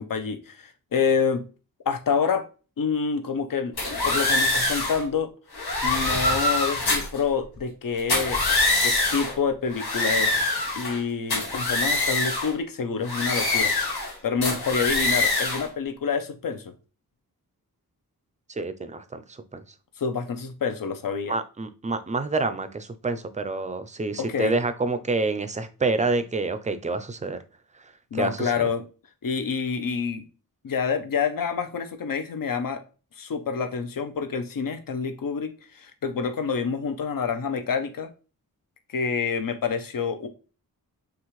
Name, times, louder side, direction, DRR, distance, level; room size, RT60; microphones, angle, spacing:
voice 1, 0.0-1.4 1.9-2.5 2.8-5.3 5.8-10.5 10.8-13.7 14.2-16.7 20.0-21.3 24.2-24.5 28.1-28.8 29.2-30.3 30.6-32.8 33.2-38.1 38.9-40.3, left 6 dB, 60° left, 8 dB, 0.7 m, -27 dB
sound 1, 3.8-5.0 5.5-7.2 8.0-9.3 9.7-11.0 11.3-12.5 13.0-14.1 14.4-15.7, left 2 dB, 80° left, 1.9 m, -24 dB
voice 2, 18.5-19.6 21.3-27.4 28.1-28.5, right 3 dB, 20° right, 11 dB, 0.4 m, -28 dB
6.0 x 2.4 x 3.1 m, 0.34 s
wide cardioid pair, 140°, 37 cm